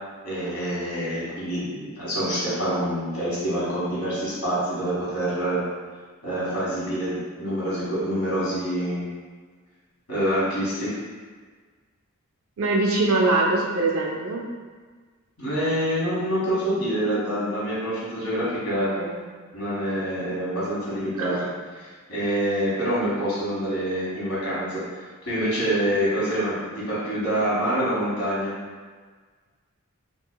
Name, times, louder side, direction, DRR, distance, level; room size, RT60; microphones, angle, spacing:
voice 1, 0.2-5.6 6.2-9.1 10.1-11.0 15.4-18.9 19.5-21.4 21.8-24.8 25.2-26.6 26.9-28.5, right 1 dB, 75° left, -8 dB, 1.4 m, -26 dB
voice 2, 12.6-14.4 18.7-19.2 21.2-21.4, right 2 dB, 70° right, -2 dB, 0.4 m, -23 dB
3.7 x 2.7 x 2.2 m, 1.5 s
head